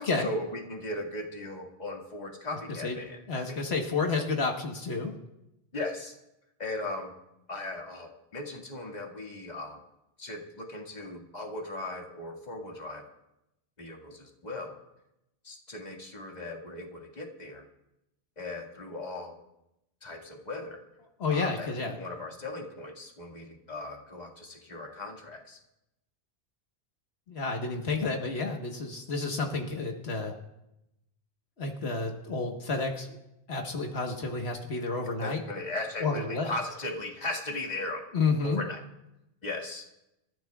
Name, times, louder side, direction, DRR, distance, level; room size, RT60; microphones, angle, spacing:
voice 1, 0.0-3.6 5.7-6.1 6.6-7.1 7.5-9.8 10.2-13.0 13.8-14.7 15.4-17.6 18.4-19.4 20.0-20.8 21.3-25.6 35.2-38.0 38.4-38.8 39.4-39.9, left 2 dB, 45° left, 0 dB, 2.0 m, -38 dB
voice 2, 3.3-5.1 21.2-22.0 27.3-30.3 31.6-33.2 33.5-35.4 36.0-36.5 38.1-38.6, left 4 dB, 85° left, 2 dB, 1.6 m, -30 dB
27.5 x 13.5 x 2.4 m, 0.87 s
omnidirectional pair, 1.1 m